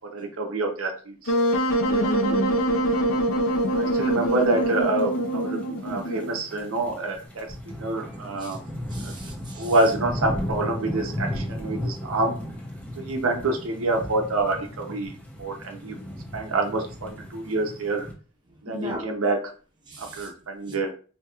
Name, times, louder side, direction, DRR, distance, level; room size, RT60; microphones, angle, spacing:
voice 1, 0.1-1.3 3.8-8.6 9.0-9.1 9.6-12.4 13.0-15.1 15.4-15.9 16.3-18.1 18.6-19.5 20.0-20.9, right 2 dB, 80° right, 2 dB, 0.7 m, -27 dB
Wind instrument woodwind instrument, 1.3-6.4, right 1 dB, 75° left, 0.7 m, -24 dB
voice 2, 1.9-2.5 8.4-8.5 8.9-9.7 18.7-19.0 19.9-20.3 20.7-20.8, right 2 dB, 20° right, -1 dB, 0.9 m, -33 dB
sound 1, 3.8-18.1, left 1 dB, 5° left, 0.6 m, -36 dB
4.3 x 2.8 x 2.3 m, 0.39 s
head